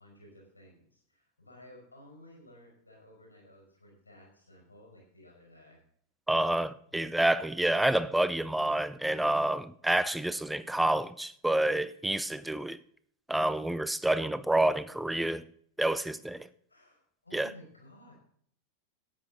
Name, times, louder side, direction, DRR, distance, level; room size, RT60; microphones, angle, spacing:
voice 1, 0.0-5.8 6.9-7.1 16.7-18.1, left 1 dB, 85° left, 4.9 m, -55 dB
voice 2, 6.3-12.8 13.3-15.4 15.8-16.5 17.3-17.5, right 1 dB, 5° right, 0.6 m, -28 dB
13.0 x 9.3 x 3.9 m
figure-of-eight pair, 90°, 0 cm